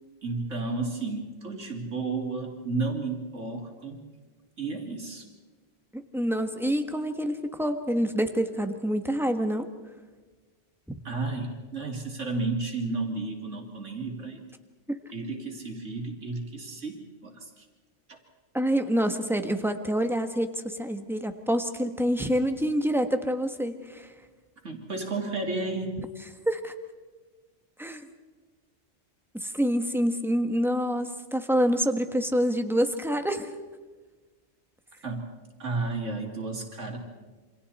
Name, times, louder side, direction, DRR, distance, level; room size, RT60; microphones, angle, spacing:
voice 1, 0.2-4.0 4.6-5.3 11.0-14.4 15.1-17.6 18.1-18.2 24.6-26.1 35.0-35.3 35.6-37.0, right 3 dB, 85° right, 2 dB, 3.3 m, -32 dB
voice 2, 5.9-9.7 10.9-11.0 14.9-15.0 18.5-24.1 26.5-26.7 27.8-28.1 29.3-33.5, equal, ahead, 6 dB, 1.4 m, -27 dB
28.0 x 26.0 x 4.3 m, 1.3 s
omnidirectional pair, 1.2 m